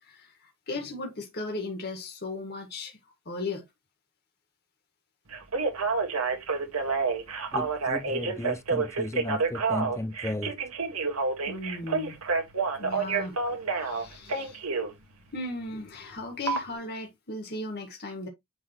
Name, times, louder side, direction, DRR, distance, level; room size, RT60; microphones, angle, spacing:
voice 1, 0.0-3.0 3.3-3.6 11.5-12.2 12.8-13.4 13.8-14.6 15.3-18.3, left 2 dB, 50° left, 1.8 m, -36 dB
Telephone, 5.3-14.9 16.5-16.6, right 4 dB, 70° right, 1.7 m, -28 dB
voice 2, 7.5-10.6, left 1 dB, 15° left, 0.5 m, -34 dB
9.5 x 3.7 x 3.0 m
head